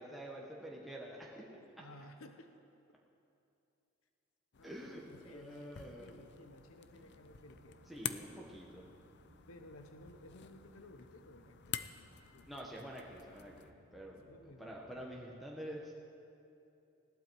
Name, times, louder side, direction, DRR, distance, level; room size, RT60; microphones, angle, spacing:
voice 1, 0.0-1.6 4.6-6.2 7.9-8.8 12.5-14.2 14.6-15.9, equal, ahead, -4 dB, 1.2 m, -47 dB
voice 2, 1.8-2.5 4.6-8.2 9.5-12.5 14.3-14.8, left 1 dB, 80° left, 7 dB, 0.9 m, -56 dB
sound 1, 4.5-13.7, left 10 dB, 55° left, 0.6 m, -49 dB
sound 2, 6.3-15.3, right 1 dB, 60° right, 1.1 m, -65 dB
20.0 x 15.5 x 4.6 m, 2.8 s
head